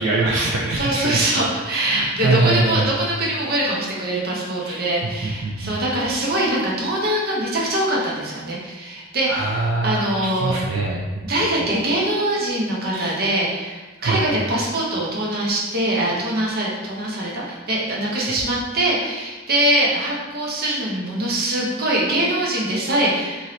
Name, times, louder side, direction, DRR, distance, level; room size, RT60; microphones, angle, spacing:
voice 1, 0.0-1.2 1.9-2.9 4.6-4.8 5.2-5.8 9.3-11.2 12.9-13.1 14.0-14.2, right 2 dB, 75° right, -4 dB, 0.4 m, -23 dB
voice 2, 0.7-10.6 11.2-23.5, right 1 dB, 50° right, -4 dB, 0.8 m, -23 dB
2.7 x 2.6 x 3.0 m, 1.2 s
head